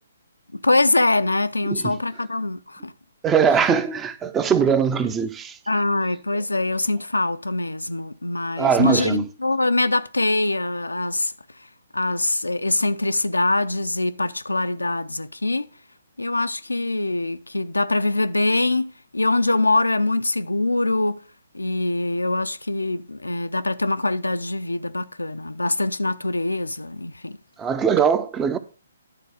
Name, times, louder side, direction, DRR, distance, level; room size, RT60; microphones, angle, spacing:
voice 1, 0.5-2.9 5.7-11.3 11.9-15.7 16.2-21.2 21.5-27.4, left 2 dB, 75° left, 0.5 m, -23 dB
voice 2, 1.6-1.9 3.2-5.5 8.6-9.2 27.6-28.6, right 7 dB, 15° right, 0.5 m, -21 dB
10.5 x 4.0 x 6.2 m
figure-of-eight pair, 130°, 0 cm